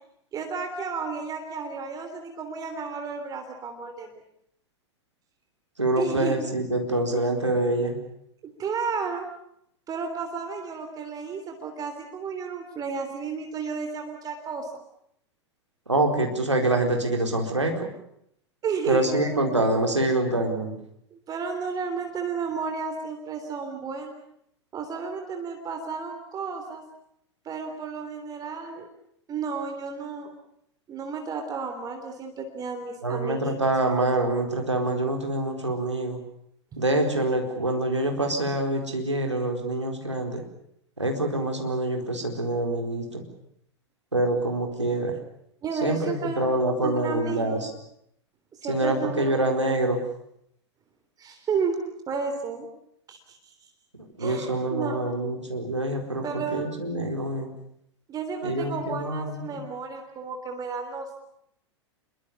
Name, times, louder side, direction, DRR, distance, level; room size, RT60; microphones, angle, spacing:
voice 1, 0.3-4.1 6.0-6.4 8.4-9.3 9.9-14.7 18.6-19.6 21.1-24.2 24.7-26.8 27.5-28.9 29.3-30.3 30.9-33.6 45.6-46.4 46.8-47.7 48.5-49.5 51.2-51.8 52.1-52.7 53.1-53.5 54.2-55.0 56.2-56.7 58.1-61.2, right 5 dB, 25° right, 5 dB, 3.4 m, -32 dB
voice 2, 5.8-8.0 15.9-17.9 18.9-20.8 33.0-36.2 36.8-40.4 41.0-43.2 44.1-45.2 45.8-47.7 48.7-50.0 54.2-57.5 58.4-59.6, right 1 dB, 85° right, 3 dB, 4.4 m, -26 dB
26.0 x 23.5 x 7.1 m, 0.73 s
figure-of-eight pair, 90°, 15 cm